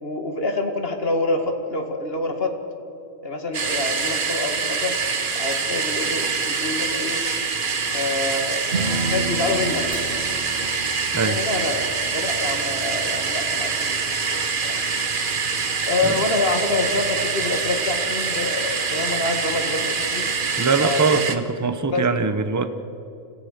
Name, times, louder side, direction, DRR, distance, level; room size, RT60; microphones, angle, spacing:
voice 1, 0.0-2.6 3.2-4.9 5.4-7.2 7.9-8.8 9.1-9.9 11.2-11.8 12.1-14.0 14.3-14.8 15.9-20.3 20.8-21.3 21.9-22.1, left 2 dB, 45° left, 5 dB, 2.0 m, -26 dB
sound 1, 3.5-21.4, right 5 dB, 40° right, 1.2 m, -25 dB
Strum, 8.7-15.0, right 3 dB, 60° right, 2.6 m, -33 dB
sound 2, 9.9-14.8, left 3 dB, 75° left, 1.8 m, -45 dB
voice 2, 20.6-22.7, right 4 dB, 15° right, 10 dB, 0.8 m, -22 dB
26.5 x 16.0 x 6.6 m, 2.8 s
omnidirectional pair, 1.4 m